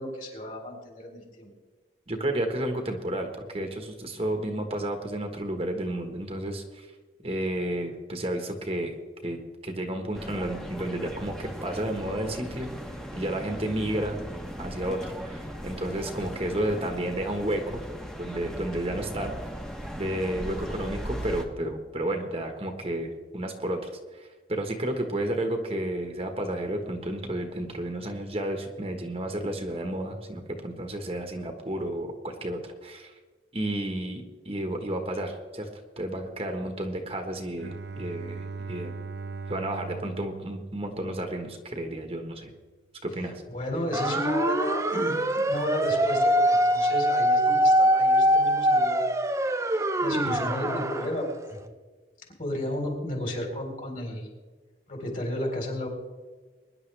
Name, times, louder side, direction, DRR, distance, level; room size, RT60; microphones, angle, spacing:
voice 1, 0.0-1.5 43.5-49.0 49.7-51.6 52.4-54.3 54.9-55.9, left 1 dB, 45° left, 0 dB, 3.9 m, -32 dB
voice 2, 2.1-6.9 7.2-8.9 9.2-12.7 13.1-14.2 14.6-17.8 18.2-19.3 19.9-33.1 33.5-35.7 36.0-38.9 39.5-42.5 43.0-43.4, right 1 dB, 30° right, 4 dB, 1.3 m, -32 dB
sound 1, 10.1-21.4, equal, 5° left, 1.2 m, -38 dB
Bowed string instrument, 37.6-41.5, right 4 dB, 65° right, 0.6 m, -39 dB
sound 2, 43.9-51.1, right 1 dB, 15° right, 0.6 m, -23 dB
22.5 x 11.0 x 3.4 m, 1.3 s
head